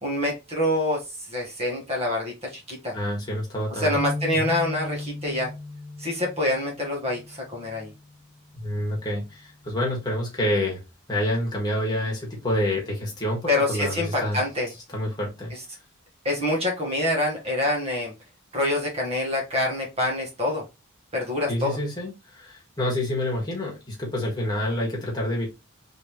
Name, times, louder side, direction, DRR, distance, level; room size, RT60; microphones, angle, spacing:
voice 1, 0.0-2.9 3.7-5.5 6.0-7.9 13.5-14.7 16.2-18.1 18.5-20.6 21.1-21.8, left 1 dB, 30° right, -1 dB, 1.3 m, -26 dB
voice 2, 2.9-4.0 4.3-4.5 8.5-10.8 11.1-14.4 14.9-15.5 21.5-25.5, left 1 dB, 20° left, -2 dB, 1.5 m, -28 dB
sound 1, 3.9-8.2 8.7-8.9 9.8-10.2, left 2 dB, 10° right, 2.1 m, -36 dB
3.7 x 3.5 x 3.0 m, 0.25 s
head